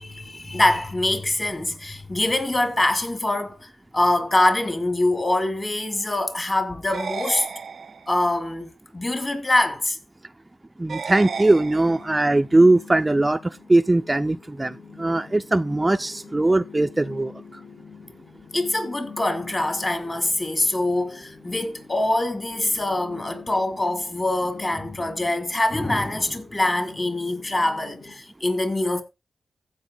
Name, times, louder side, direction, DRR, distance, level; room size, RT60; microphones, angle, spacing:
voice 1, 0.0-7.5 8.1-10.0 18.5-29.0, left 2 dB, 30° left, 2.8 m, -24 dB
sound 1, 6.9-8.3 10.9-12.3, right 6 dB, 70° right, 0.5 m, -34 dB
voice 2, 10.8-17.4, right 2 dB, 20° right, 0.4 m, -20 dB
sound 2, 11.1-28.1, left 5 dB, 60° left, 3.3 m, -45 dB
15.5 x 5.3 x 3.9 m
cardioid pair, 70°, 0 cm